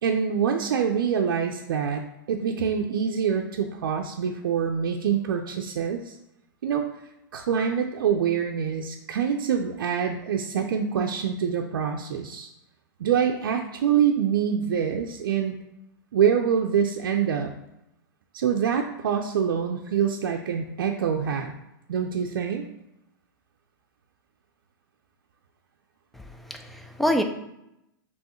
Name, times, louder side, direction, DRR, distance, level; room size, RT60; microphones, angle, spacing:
voice 1, 0.0-2.0 2.3-6.2 6.6-6.9 7.3-12.5 13.0-15.6 16.1-17.5 18.3-21.5 21.9-22.7, right 7 dB, 85° right, 2 dB, 0.5 m, -25 dB
voice 2, 26.1-27.2, equal, ahead, 5 dB, 0.4 m, -26 dB
5.4 x 3.1 x 3.0 m, 0.85 s
hypercardioid pair, 140°, 11 cm